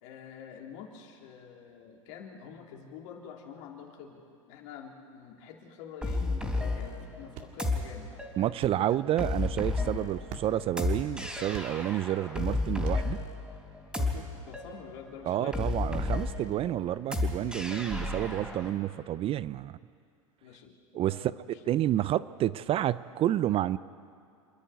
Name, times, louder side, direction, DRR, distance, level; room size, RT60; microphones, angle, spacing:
voice 1, 0.0-8.1 8.4-9.0 13.9-15.8 16.1-16.2 18.5-18.6 20.4-21.8, left 7 dB, 60° left, 1 dB, 3.3 m, -47 dB
sound 1, 6.0-18.7, left 2 dB, 5° right, 3.6 m, -33 dB
sound 2, 7.0-13.3, right 7 dB, 50° right, 2.3 m, -50 dB
voice 2, 8.4-13.2 15.3-19.8 20.9-23.8, right 12 dB, 35° right, 17 dB, 0.4 m, -29 dB
27.5 x 10.5 x 9.2 m, 2.4 s
hypercardioid pair, 100°, 17 cm